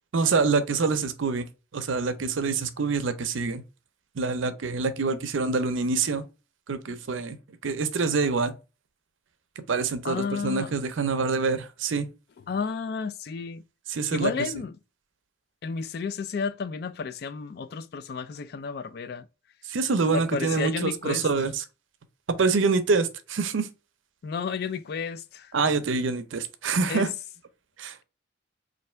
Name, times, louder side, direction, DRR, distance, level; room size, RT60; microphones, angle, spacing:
voice 1, 0.1-1.5 1.7-3.6 4.2-6.2 6.7-7.4 7.6-8.5 9.6-12.1 13.9-14.3 19.7-21.6 22.3-23.7 25.5-27.1 27.8-28.0, right 4 dB, 80° right, 0.6 m, -26 dB
voice 2, 10.0-10.7 12.5-13.6 14.1-14.8 15.6-19.3 20.1-21.3 24.2-25.5 26.9-27.1, left 5 dB, 55° left, 0.3 m, -32 dB
3.3 x 2.6 x 4.3 m
head